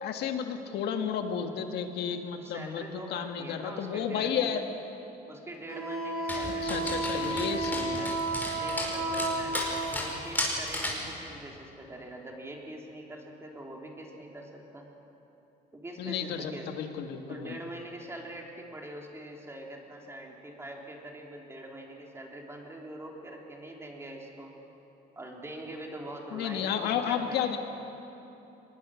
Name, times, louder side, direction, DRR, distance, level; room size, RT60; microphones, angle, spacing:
voice 1, 0.0-4.6 6.6-8.0 16.0-17.6 26.3-27.6, left 8 dB, 75° left, 5 dB, 1.8 m, -32 dB
voice 2, 2.4-4.6 5.3-8.2 8.5-14.9 15.7-16.8 17.3-24.5 25.1-27.5, right 1 dB, 15° right, 0 dB, 3.3 m, -43 dB
Wind instrument woodwind instrument, 5.7-9.8, right 2 dB, 85° right, 5.3 m, -32 dB
Dog, 6.3-11.1, left 1 dB, 10° left, 5.3 m, -34 dB
23.0 x 21.0 x 6.4 m, 3.0 s
cardioid pair, 110°, 17 cm